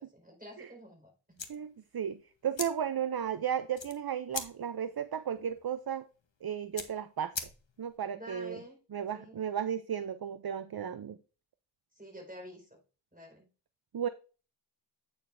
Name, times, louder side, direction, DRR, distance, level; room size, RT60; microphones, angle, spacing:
voice 1, 0.1-1.4 8.1-8.8 9.1-9.4 11.9-12.8 13.1-13.4, equal, 20° right, 0 dB, 4.7 m, -49 dB
sound 1, 1.3-8.0, left 5 dB, 75° left, 1.0 m, -44 dB
voice 2, 1.5-6.1 6.4-7.4 7.8-8.6 8.9-11.2 13.9-14.1, right 8 dB, 55° right, 12 dB, 0.5 m, -34 dB
8.6 x 6.9 x 2.6 m, 0.35 s
wide cardioid pair, 45°, 45 cm